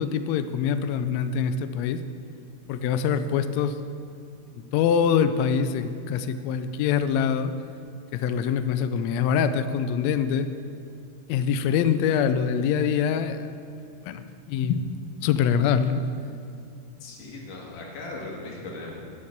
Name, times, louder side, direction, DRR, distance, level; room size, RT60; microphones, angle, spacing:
voice 1, 0.0-2.0 2.7-3.8 4.5-7.5 8.1-10.5 11.3-13.5 14.0-14.9 15.2-16.0, left 7 dB, 85° left, 10 dB, 1.5 m, -24 dB
voice 2, 17.0-18.9, left 2 dB, 70° left, -2 dB, 3.3 m, -38 dB
8.6 x 8.6 x 8.0 m, 2.4 s
omnidirectional pair, 3.7 m